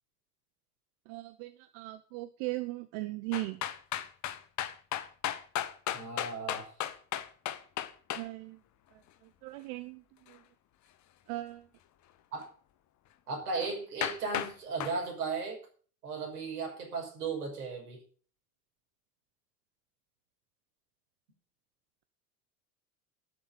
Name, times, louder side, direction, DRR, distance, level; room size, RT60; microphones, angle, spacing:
voice 1, 1.1-3.6 8.1-8.6 9.4-10.0 10.3-10.4 11.3-11.7, right 19 dB, 50° right, 11 dB, 0.9 m, -38 dB
sound 1, 3.3-8.2 13.6-13.7 14.0-14.5 14.8-15.0, left 12 dB, 40° left, 1.2 m, -34 dB
voice 2, 5.9-6.7 12.3-12.5 13.3-15.6 16.0-18.0, right 4 dB, 75° right, 0 dB, 6.3 m, -36 dB
12.5 x 7.2 x 7.9 m, 0.44 s
figure-of-eight pair, 75°, 46 cm